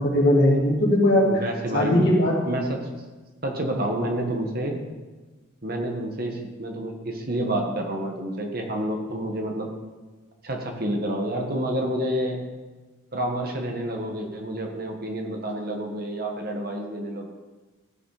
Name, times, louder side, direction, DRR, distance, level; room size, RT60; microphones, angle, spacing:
voice 1, 0.0-1.4 1.7-2.4, left 1 dB, 50° left, -3 dB, 3.0 m, -19 dB
voice 2, 1.3-2.0 2.5-2.8 3.4-4.8 5.6-9.7 10.4-12.4 13.1-17.3, right 1 dB, 45° right, 2 dB, 1.6 m, -29 dB
14.0 x 8.4 x 5.0 m, 1.2 s
head